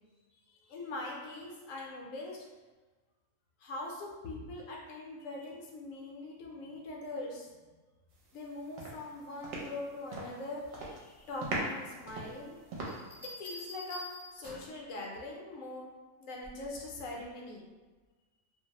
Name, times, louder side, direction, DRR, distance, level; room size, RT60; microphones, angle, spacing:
voice 1, 0.5-2.4 3.6-7.7 8.3-12.6 13.2-14.0 14.3-15.9 16.2-17.6, left 2 dB, 70° left, -2 dB, 0.9 m, -42 dB
sound 1, 8.3-8.5 8.8-10.4 10.7-11.1 11.4-13.3, right 2 dB, 75° right, 0.9 m, -39 dB
Bell, 12.9-14.8 16.4-16.8, left 1 dB, 20° left, 0.6 m, -46 dB
2.5 x 2.0 x 2.8 m, 1.3 s
omnidirectional pair, 1.5 m